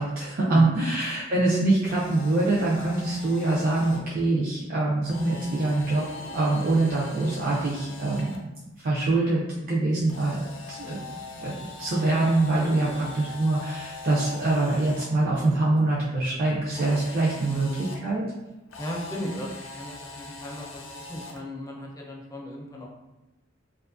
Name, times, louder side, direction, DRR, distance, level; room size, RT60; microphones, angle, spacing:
voice 1, 0.0-8.5 8.8-10.4 10.7-11.0 11.4-17.7 18.0-18.3, right 2 dB, 50° right, -6 dB, 0.4 m, -24 dB
Camera, 1.8-4.0 5.1-8.4 10.1-15.0 16.7-18.0 18.7-21.4, left 3 dB, 90° left, 0.5 m, -42 dB
voice 2, 12.8-13.2 17.5-17.9 18.8-22.9, equal, 15° left, -2 dB, 0.4 m, -36 dB
2.5 x 2.3 x 2.4 m, 0.98 s
head